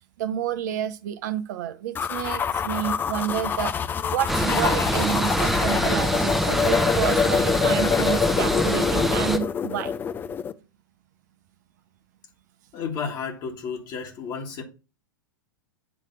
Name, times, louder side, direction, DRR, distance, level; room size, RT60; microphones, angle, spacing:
voice 1, 0.2-10.0 10.3-10.4, right 10 dB, 55° right, 0.7 m, -30 dB
sound 1, 1.9-10.5, left 7 dB, 15° left, 0.5 m, -26 dB
sound 2, 4.3-9.4, right 1 dB, ahead, 0.9 m, -25 dB
voice 2, 12.7-14.6, left 6 dB, 35° left, 1.7 m, -32 dB
8.7 x 3.3 x 5.7 m
figure-of-eight pair, 95°, 11 cm